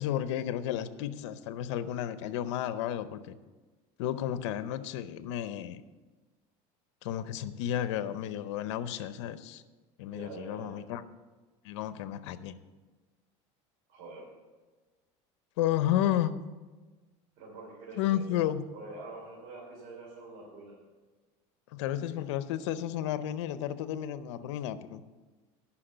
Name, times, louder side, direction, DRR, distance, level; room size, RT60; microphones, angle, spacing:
voice 1, 0.0-3.4 4.0-5.8 7.0-9.6 10.0-11.0 11.6-12.6 15.6-16.4 18.0-18.6 21.7-25.0, left 11 dB, 90° left, 13 dB, 0.6 m, -32 dB
voice 2, 10.1-10.8 13.9-14.3 17.4-18.3 18.7-20.8, right 3 dB, 70° right, -4 dB, 3.2 m, -46 dB
10.0 x 6.0 x 7.8 m, 1.3 s
supercardioid pair, 125°, 15 cm